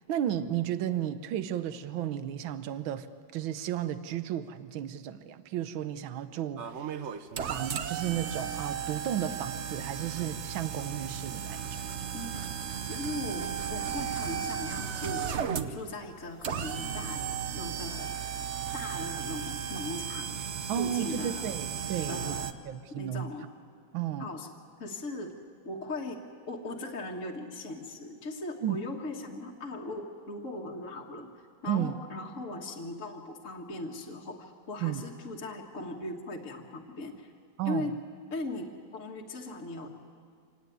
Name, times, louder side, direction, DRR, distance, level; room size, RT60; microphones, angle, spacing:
voice 1, 0.1-3.1 3.3-7.0 7.5-11.8 20.7-23.3 23.9-24.3 28.6-28.8 31.7-32.0 34.8-35.0 37.6-37.9, right 10 dB, 80° right, 12 dB, 1.6 m, -33 dB
sound 1, 6.6-22.5, right 8 dB, 55° right, 0.7 m, -35 dB
voice 2, 12.8-15.4 15.7-18.1 18.7-20.4 20.8-21.5 22.1-22.5 23.0-23.5 24.2-24.5 24.8-25.3 25.7-26.2 26.5-31.3 31.6-37.3 37.7-37.9 38.3-39.9, left 2 dB, 40° left, -1 dB, 1.8 m, -39 dB
26.0 x 18.0 x 9.3 m, 2.1 s
omnidirectional pair, 2.2 m